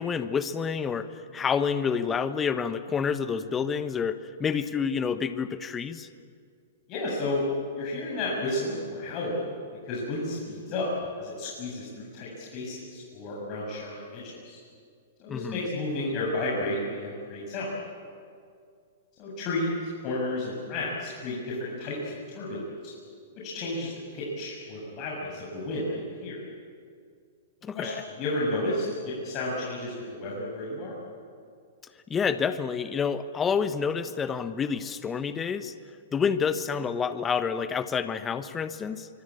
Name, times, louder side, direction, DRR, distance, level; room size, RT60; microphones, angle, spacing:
voice 1, 0.0-6.1 15.3-15.7 27.6-28.0 32.1-35.7 36.1-39.1, left 6 dB, 20° left, 10 dB, 1.2 m, -28 dB
voice 2, 6.9-7.4 7.7-9.5 9.8-10.9 11.2-14.6 15.2-17.7 19.2-22.9 23.4-26.4 27.7-30.9, left 2 dB, 40° left, -5 dB, 7.6 m, -32 dB
25.5 x 24.0 x 8.7 m, 2.2 s
hypercardioid pair, 115°, 0 cm